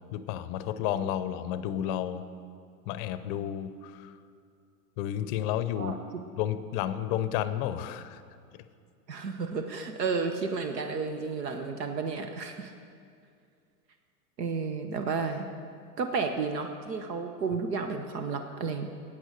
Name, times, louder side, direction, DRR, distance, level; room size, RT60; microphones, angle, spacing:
voice 1, 0.1-2.3 2.9-4.1 5.0-5.9 6.4-8.2 8.5-8.6, left 11 dB, 35° left, 13 dB, 0.6 m, -31 dB
voice 2, 9.1-12.7 14.4-15.5 16.0-18.9, right 4 dB, 75° right, 6 dB, 1.1 m, -32 dB
12.0 x 8.8 x 6.6 m, 2.3 s
hypercardioid pair, 105°, 49 cm